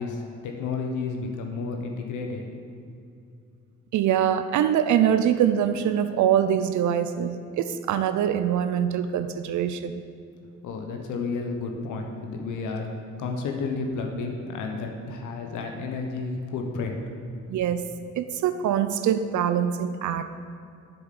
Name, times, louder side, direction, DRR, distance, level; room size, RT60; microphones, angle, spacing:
voice 1, 0.0-2.6 10.4-12.9 13.2-17.1, left 4 dB, 80° left, 3 dB, 1.1 m, -31 dB
voice 2, 3.9-10.0 17.5-17.8 18.2-20.2, right 9 dB, 70° right, 10 dB, 0.6 m, -24 dB
7.9 x 7.2 x 6.6 m, 2.4 s
cardioid pair, 90°, 30 cm